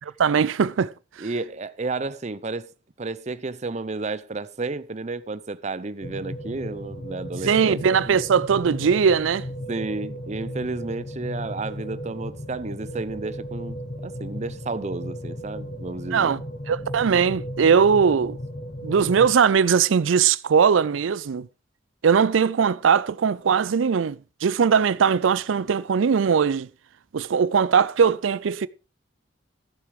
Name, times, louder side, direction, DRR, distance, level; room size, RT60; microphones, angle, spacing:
voice 1, 0.2-0.9 1.2-1.3 7.4-9.4 16.1-16.4 16.7-18.4 18.8-21.5 22.0-26.7 27.1-28.7, right 6 dB, 90° right, 0.4 m, -20 dB
voice 2, 1.2-2.7 3.0-7.8 8.1-8.2 9.7-13.8 14.0-16.3, right 3 dB, 35° right, 0.6 m, -32 dB
sound 1, 6.0-19.3, equal, 40° left, 1.2 m, -35 dB
14.5 x 6.8 x 4.7 m
head